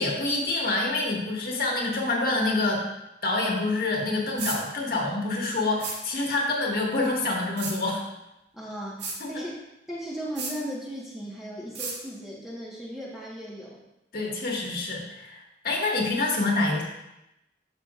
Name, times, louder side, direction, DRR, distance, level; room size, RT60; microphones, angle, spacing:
voice 1, 0.0-2.9 3.2-8.0 9.2-9.4 14.1-16.8, left 2 dB, 50° left, -2 dB, 1.7 m, -27 dB
sound 1, 4.4-4.6 5.8-6.0 7.6-7.8 9.0-9.2 10.4-10.5 11.7-12.0, right 4 dB, 75° right, 1.9 m, -32 dB
voice 2, 8.5-9.5 9.9-13.8, equal, ahead, -6 dB, 1.3 m, -37 dB
13.0 x 6.0 x 2.5 m, 0.91 s
head